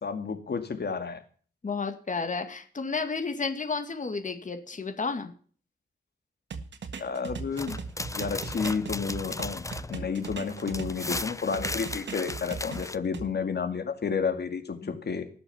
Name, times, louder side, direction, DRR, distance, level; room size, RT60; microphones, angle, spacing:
voice 1, 0.0-1.2 7.0-7.8 8.1-15.3, left 5 dB, 65° left, 6 dB, 2.2 m, -31 dB
voice 2, 1.6-5.3 14.8-14.9, left 4 dB, 45° left, 6 dB, 2.2 m, -32 dB
sound 1, 6.5-11.2 11.5-13.3, right 5 dB, 80° right, 1.6 m, -38 dB
sound 2, 7.5-13.0, left 2 dB, 15° left, 0.7 m, -36 dB
18.5 x 6.8 x 7.2 m, 0.43 s
cardioid pair, 80°, 18 cm